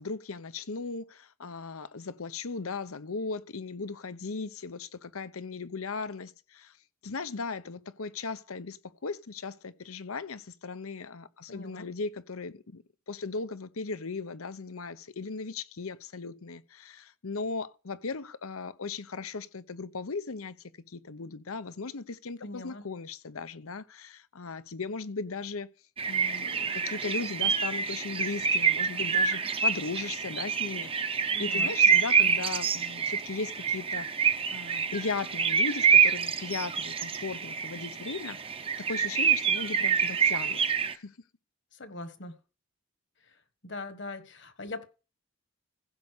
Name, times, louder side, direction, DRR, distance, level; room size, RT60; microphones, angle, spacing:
voice 1, 0.0-6.8 7.0-20.6 20.9-25.7 26.1-34.1 34.5-38.4 38.9-40.6 40.9-41.1, left 4 dB, 90° left, 0.8 m, -37 dB
voice 2, 11.5-11.9 22.4-22.8 31.3-31.7 32.2-32.3 41.8-42.4 43.6-44.9, left 2 dB, 55° left, 1.4 m, -41 dB
sound 1, 26.0-40.9, right 6 dB, 25° right, 0.7 m, -27 dB
15.5 x 5.4 x 6.6 m
head